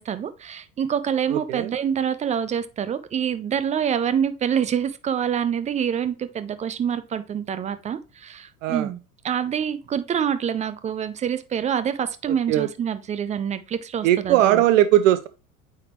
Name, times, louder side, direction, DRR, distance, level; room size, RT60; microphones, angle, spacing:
voice 1, 0.0-9.0 9.2-14.6, right 8 dB, 15° right, 0.4 m, -26 dB
voice 2, 1.3-1.7 8.6-8.9 12.5-12.7 14.0-15.3, right 13 dB, 60° right, 0.6 m, -19 dB
8.9 x 3.7 x 3.0 m
figure-of-eight pair, 75°, 44 cm